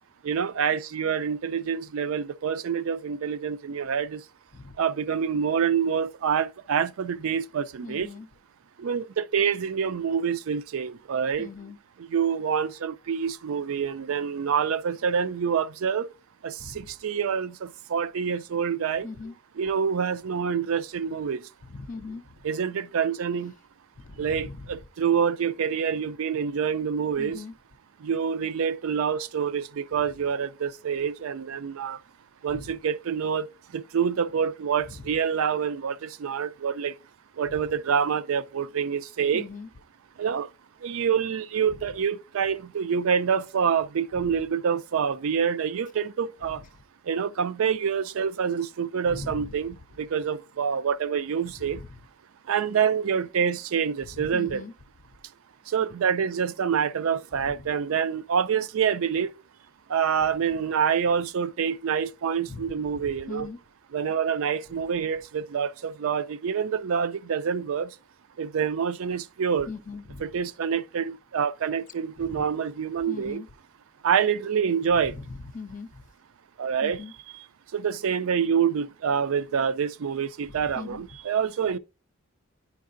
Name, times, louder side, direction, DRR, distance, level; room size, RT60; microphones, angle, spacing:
voice 1, 0.2-4.2 4.8-8.1 8.8-11.5 12.0-16.1 16.4-19.1 19.6-21.5 22.4-23.5 24.2-27.4 28.0-32.0 32.4-36.9 37.4-39.5 40.2-40.5 40.8-46.6 47.0-51.8 52.4-54.6 55.7-59.3 59.9-63.5 63.9-68.0 68.4-69.7 70.2-73.4 74.0-75.1 76.6-77.0 77.3-77.5 77.7-81.8, right 7 dB, 75° right, 0.4 m, -27 dB
voice 2, 7.8-8.3 11.4-11.8 16.6-16.8 19.0-19.4 21.7-22.2 24.0-24.6 27.2-27.5 32.5-32.6 39.3-39.7 49.1-49.5 51.6-51.9 54.3-54.7 62.5-62.6 63.3-63.6 69.7-70.2 72.2-72.5 73.1-73.5 75.2-76.0 76.8-77.1 80.8-81.0, left 4 dB, 35° left, 0.4 m, -39 dB
10.0 x 4.7 x 2.5 m
head